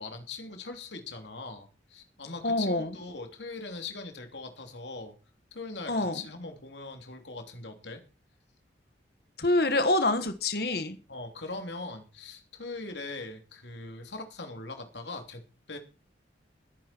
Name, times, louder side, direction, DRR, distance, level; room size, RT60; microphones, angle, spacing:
voice 1, 0.0-5.1 5.5-8.0 11.1-15.4 15.7-15.8, left 3 dB, 80° left, 5 dB, 3.2 m, -41 dB
voice 2, 2.4-2.9 5.9-6.2 9.4-11.0, left 2 dB, 60° left, 10 dB, 1.4 m, -26 dB
21.0 x 9.5 x 4.5 m, 0.34 s
head